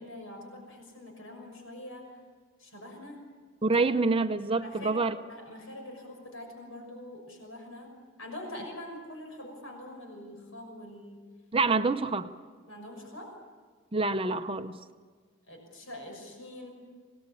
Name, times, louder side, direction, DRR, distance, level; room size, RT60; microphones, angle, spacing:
voice 1, 0.0-2.1 2.6-3.2 3.7-3.9 4.6-4.9 5.3-7.9 8.2-11.2 12.7-13.3 15.5-16.7, left 1 dB, 75° left, 2 dB, 6.1 m, -44 dB
voice 2, 3.6-5.2 11.5-12.3 13.9-14.7, right 3 dB, 25° right, 9 dB, 0.7 m, -26 dB
25.5 x 19.0 x 8.4 m, 1.5 s
head